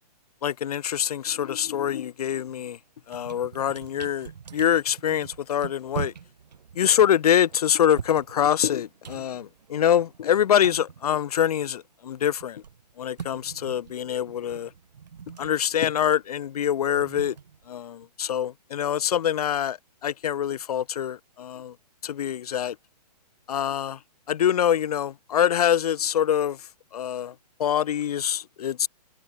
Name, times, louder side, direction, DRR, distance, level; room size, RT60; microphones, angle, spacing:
voice 1, 0.4-2.8 3.1-6.1 6.8-12.6 13.0-14.7 15.4-17.4 17.7-21.7 22.0-22.8 23.5-24.0 24.3-26.7 26.9-27.3 27.6-28.9, left 9 dB, 65° left, 0.4 m, -25 dB
sound 1, 2.5-2.7 3.0-11.9 12.1-18.1, right 7 dB, 80° right, 2.2 m, -43 dB
hypercardioid pair, 175°, 21 cm